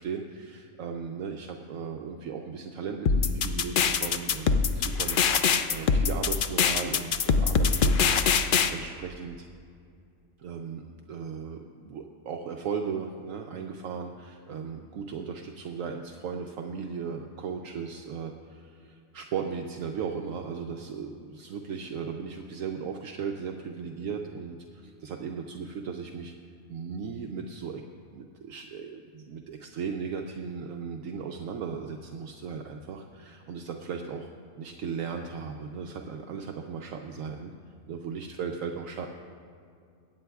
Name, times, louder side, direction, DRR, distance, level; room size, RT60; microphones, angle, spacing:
voice 1, 0.0-8.1 8.4-9.5 10.4-10.8 11.1-26.3 26.7-27.8 28.1-34.3 34.6-37.5 37.9-39.1, right 6 dB, 70° right, 3 dB, 0.9 m, -36 dB
sound 1, 3.1-8.7, left 6 dB, 85° left, 0.4 m, -23 dB
23.0 x 8.7 x 2.3 m, 2.3 s
omnidirectional pair, 1.5 m